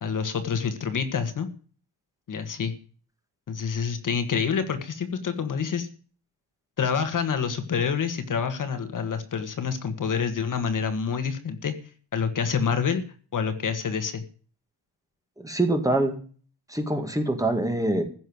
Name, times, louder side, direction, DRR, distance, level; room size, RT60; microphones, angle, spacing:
voice 1, 0.0-1.5 2.3-2.7 3.5-5.9 6.8-11.7 12.1-13.0 13.3-14.2, left 6 dB, 45° left, 9 dB, 1.6 m, -27 dB
voice 2, 15.4-16.2 16.7-18.0, right 1 dB, 10° right, 5 dB, 2.0 m, -24 dB
15.5 x 6.6 x 9.4 m, 0.42 s
wide cardioid pair, 180°, 43 cm